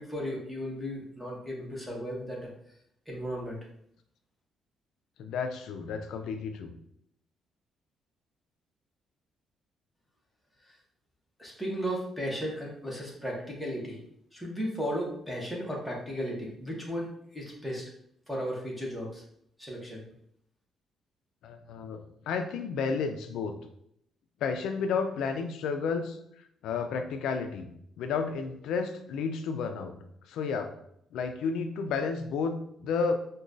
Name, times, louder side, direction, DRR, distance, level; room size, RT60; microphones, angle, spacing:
voice 1, 0.0-2.5 3.1-3.6 11.4-14.0 14.3-17.9 18.3-19.2 19.6-20.0, equal, ahead, -4 dB, 0.9 m, -35 dB
voice 2, 5.2-6.7 21.4-23.6 24.4-26.2 26.6-27.7 28.0-30.0 30.2-30.8 31.1-33.1, left 5 dB, 85° left, 7 dB, 0.3 m, -31 dB
4.9 x 2.2 x 2.5 m, 0.71 s
cardioid pair, 150°, 0 cm